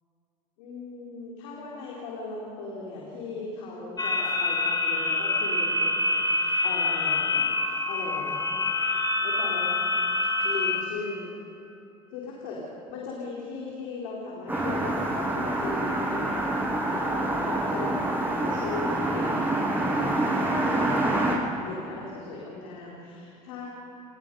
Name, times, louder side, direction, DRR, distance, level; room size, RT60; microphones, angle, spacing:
voice 1, 0.6-8.4 9.2-9.7 10.4-11.3 12.1-12.6 12.9-23.7, left 3 dB, 75° left, -4 dB, 3.9 m, -38 dB
sound 1, 4.0-10.8, left 2 dB, 25° left, 3.5 m, -26 dB
sound 2, 14.5-21.3, right 1 dB, 10° right, 7.1 m, -26 dB
30.0 x 19.5 x 5.4 m, 2.9 s
hypercardioid pair, 75°, 17 cm